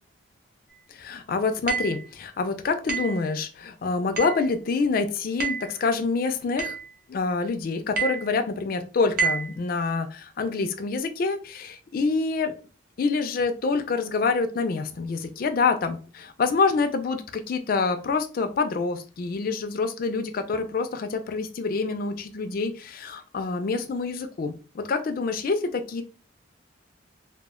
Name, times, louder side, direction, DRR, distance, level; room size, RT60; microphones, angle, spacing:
voice 1, 0.9-6.8 7.1-12.5 13.0-26.0, left 4 dB, 45° left, 7 dB, 0.3 m, -26 dB
sound 1, 1.7-2.0 2.9-3.2 4.2-4.5 5.4-5.7 6.6-6.9 8.0-8.3 9.2-9.5, right 5 dB, 45° right, 0.5 m, -28 dB
2.1 x 2.0 x 3.5 m, 0.36 s
head